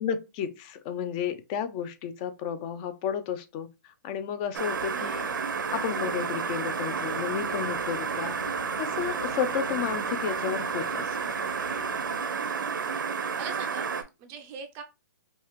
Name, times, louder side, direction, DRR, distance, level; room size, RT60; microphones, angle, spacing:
voice 1, 0.0-5.3 5.7-8.4 8.8-11.4, left 8 dB, 30° left, 0.6 m, -32 dB
sound 1, 4.5-14.0, right 6 dB, 85° right, 0.8 m, -31 dB
sound 2, 4.7-12.2, left 5 dB, 85° left, 1.0 m, -47 dB
voice 2, 12.1-14.8, right 6 dB, 25° right, 0.5 m, -43 dB
5.3 x 2.4 x 3.1 m
hypercardioid pair, 150°, 10 cm